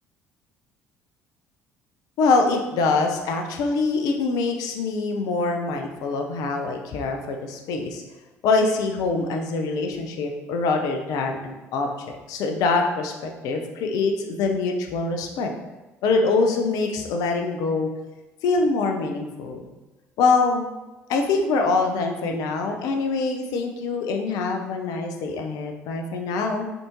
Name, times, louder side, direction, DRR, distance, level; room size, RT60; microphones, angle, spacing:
voice 1, 2.2-8.0 8.4-15.5 16.0-17.9 18.4-19.6 20.2-20.7 21.1-26.7, left 3 dB, 55° left, 3 dB, 0.5 m, -24 dB
3.4 x 2.5 x 2.9 m, 1.2 s
figure-of-eight pair, 55°, 7 cm